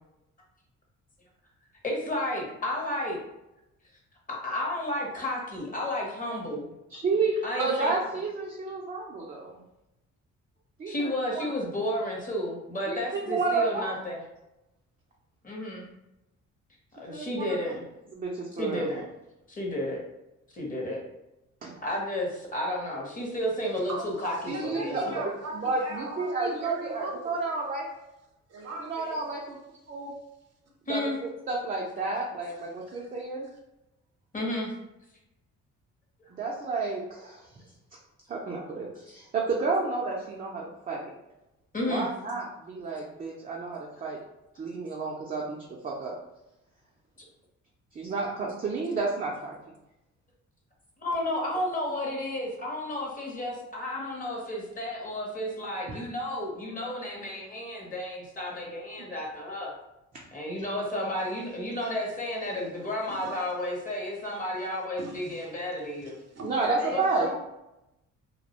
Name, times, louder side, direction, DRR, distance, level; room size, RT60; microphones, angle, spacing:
voice 1, 1.8-3.2 4.3-6.7 7.4-8.0 10.9-14.2 15.4-15.8 16.9-17.8 18.6-19.0 19.5-20.0 20.5-21.0 21.8-25.2 30.9-31.2 34.3-34.7 41.7-42.1 51.0-59.7 60.3-66.1 66.9-67.0, left 1 dB, 30° left, -2 dB, 0.7 m, -32 dB
voice 2, 6.9-9.6 10.8-10.9 11.3-11.5 12.9-13.9 17.1-17.5 18.1-18.9 21.6-21.7 24.5-27.9 28.8-29.6 29.9-30.1 30.9-33.5 36.3-37.5 38.3-41.1 41.9-44.2 44.6-46.1 47.9-49.5 55.9-56.1 66.4-67.3, right 3 dB, 30° right, -2 dB, 0.4 m, -31 dB
voice 3, 23.9-27.4 28.5-29.3 32.6-33.1 63.1-63.5 65.0-65.5 66.0-67.3, right 2 dB, 55° right, 0 dB, 0.7 m, -39 dB
2.2 x 2.0 x 2.8 m, 0.92 s
cardioid pair, 90°, 30 cm